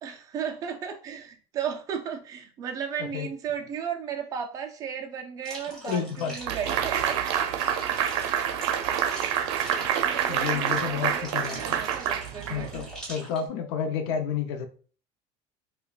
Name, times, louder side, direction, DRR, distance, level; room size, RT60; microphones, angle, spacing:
voice 1, 0.0-7.2 8.4-8.7 10.0-12.7, right 7 dB, 25° right, 4 dB, 0.4 m, -35 dB
sound 1, 5.4-13.4, right 1 dB, 5° left, 0.8 m, -43 dB
voice 2, 5.8-6.3 10.3-11.6 12.5-14.7, left 7 dB, 70° left, 7 dB, 0.6 m, -30 dB
sound 2, 6.5-12.9, right 9 dB, 90° right, 0.5 m, -27 dB
4.8 x 2.2 x 2.3 m, 0.40 s
cardioid pair, 180°, 14 cm